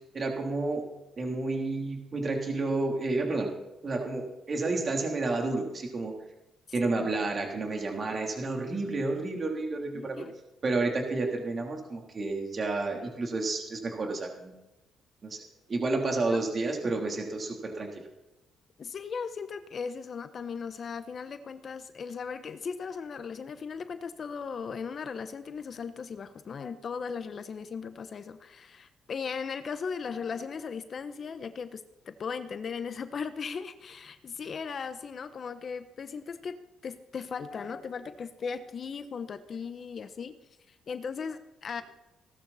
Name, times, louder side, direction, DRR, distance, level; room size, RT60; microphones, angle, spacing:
voice 1, 0.1-0.8 1.2-3.5 3.8-6.1 6.7-10.2 10.6-14.5 15.2-15.4 15.7-17.9, right 3 dB, 40° right, 1 dB, 3.4 m, -30 dB
voice 2, 9.9-10.3 16.3-16.4 18.8-36.6 36.8-40.4 40.7-41.8, left 6 dB, 50° left, 11 dB, 1.0 m, -37 dB
17.5 x 13.0 x 4.3 m, 0.96 s
cardioid pair, 90°, 0 cm